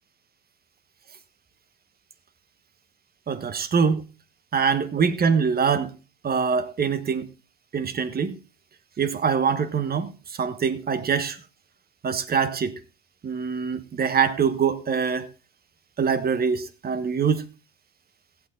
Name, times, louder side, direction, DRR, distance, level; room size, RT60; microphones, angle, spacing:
voice 1, 3.3-4.0 4.5-5.9 6.2-7.3 7.7-8.4 9.0-11.4 12.0-12.8 13.2-15.3 16.0-17.5, right 6 dB, 35° right, 1.4 m, -24 dB
15.0 x 8.9 x 3.8 m
cardioid pair, 110°, 29 cm